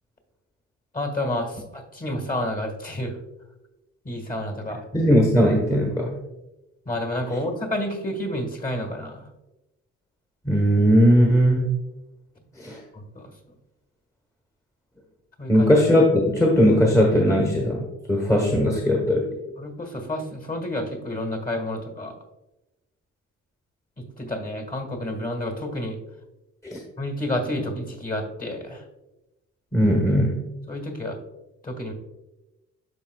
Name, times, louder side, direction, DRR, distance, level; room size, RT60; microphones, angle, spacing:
voice 1, 0.9-3.2 4.1-4.8 6.9-9.3 12.9-13.3 15.4-15.7 19.6-22.1 24.0-26.0 27.0-28.8 30.7-31.2 31.6-31.9, left 1 dB, 30° left, 4 dB, 1.7 m, -30 dB
voice 2, 4.7-6.1 10.4-11.7 12.6-12.8 15.5-19.3 26.6-26.8 29.7-30.4, equal, 10° left, 0 dB, 1.1 m, -19 dB
12.5 x 4.3 x 2.3 m, 0.98 s
cardioid pair, 90°, 30 cm